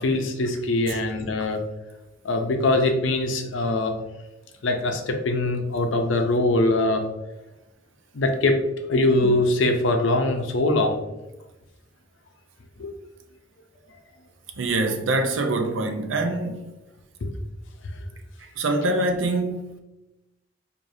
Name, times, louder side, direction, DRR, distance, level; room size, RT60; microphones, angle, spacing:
voice 1, 0.0-1.6 2.2-3.9 4.6-7.0 8.1-8.6 8.9-11.0 12.8-12.9 17.2-17.3, left 2 dB, 75° left, 0.6 m, -22 dB
voice 2, 14.6-16.7 18.4-19.8, right 2 dB, 80° right, 0.5 m, -25 dB
4.8 x 2.5 x 2.6 m
head